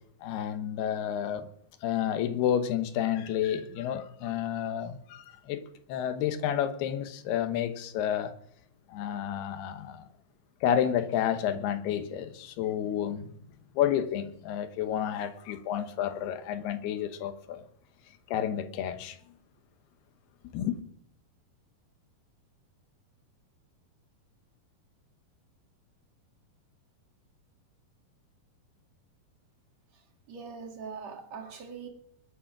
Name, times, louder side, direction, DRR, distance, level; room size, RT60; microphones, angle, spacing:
voice 1, 0.2-1.5 1.8-8.3 8.9-10.1 10.6-13.3 13.7-17.7 18.3-19.2 20.5-20.8, left 10 dB, 85° left, 3.1 m, -30 dB
voice 2, 30.3-31.9, right 5 dB, 50° right, 2.9 m, -41 dB
21.5 x 7.8 x 6.0 m
omnidirectional pair, 4.5 m